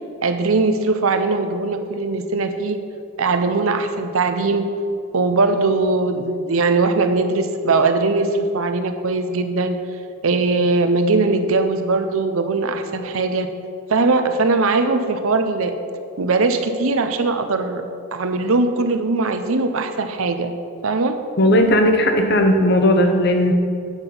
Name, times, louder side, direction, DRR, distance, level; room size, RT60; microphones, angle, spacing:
voice 1, 0.2-2.8 3.2-4.7 5.1-9.8 10.2-13.5 13.9-15.8 16.2-17.8 18.1-20.5 20.8-21.2, right 3 dB, 70° right, 8 dB, 0.7 m, -20 dB
voice 2, 21.4-23.5, left 1 dB, 50° left, 5 dB, 0.8 m, -16 dB
8.9 x 5.8 x 5.4 m, 2.5 s
head